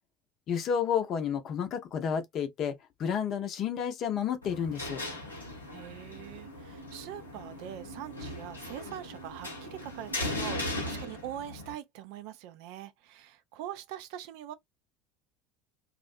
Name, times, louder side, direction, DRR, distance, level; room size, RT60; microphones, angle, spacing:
voice 1, 0.5-5.0, left 7 dB, 45° left, 0.6 m, -31 dB
sound 1, 4.4-11.7, left 1 dB, 85° left, 0.7 m, -38 dB
voice 2, 5.7-14.5, right 11 dB, 60° right, 0.4 m, -43 dB
2.4 x 2.0 x 2.4 m
figure-of-eight pair, 70°, 0 cm